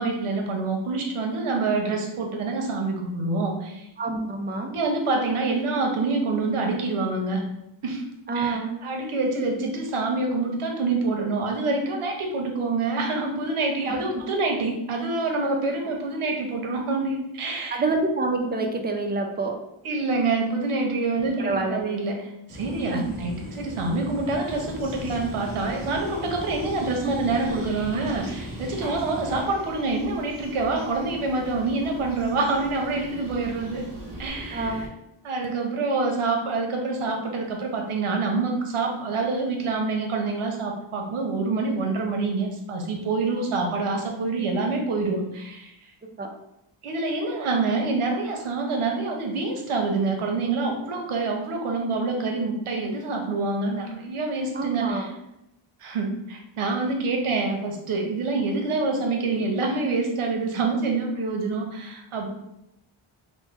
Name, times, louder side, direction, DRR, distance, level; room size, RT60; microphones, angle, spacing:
voice 1, 0.0-3.9 4.7-7.4 7.8-8.0 8.3-17.8 19.8-22.2 22.5-33.8 34.2-34.8 35.2-45.7 46.8-55.1 55.8-62.3, right 3 dB, 80° right, 2 dB, 0.8 m, -26 dB
voice 2, 4.0-4.7 8.3-8.7 13.9-14.2 17.7-19.5 21.2-21.8 22.9-23.1 34.5-34.8 46.2-46.3 54.5-55.1, right 3 dB, 20° right, 3 dB, 0.4 m, -27 dB
sound 1, 22.5-29.4, equal, 20° left, 0.7 m, -39 dB
sound 2, 24.4-34.9, right 1 dB, 40° right, 0.8 m, -41 dB
3.0 x 2.1 x 3.4 m, 0.85 s
wide cardioid pair, 80°, 50 cm